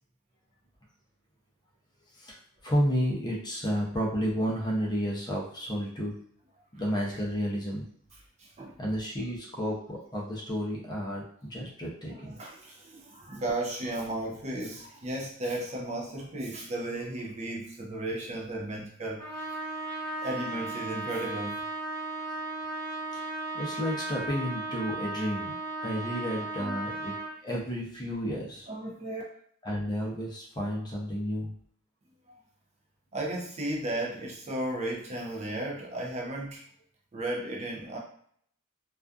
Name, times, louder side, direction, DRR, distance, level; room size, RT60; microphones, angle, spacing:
voice 1, 2.6-6.1 6.8-7.8 8.8-11.2 11.5-12.4 23.1-25.5 25.8-27.1 27.4-28.7 29.6-31.5, equal, 20° left, -3 dB, 0.5 m, -31 dB
voice 2, 8.4-8.8 12.0-19.2 19.5-19.6 20.2-21.6 26.6-26.8 28.7-29.2 32.3-32.4 33.1-36.6 37.1-38.0, right 1 dB, 30° right, -2 dB, 0.4 m, -35 dB
Trumpet, 19.2-27.4, right 2 dB, 70° right, 0.9 m, -36 dB
2.4 x 2.3 x 2.3 m, 0.63 s
head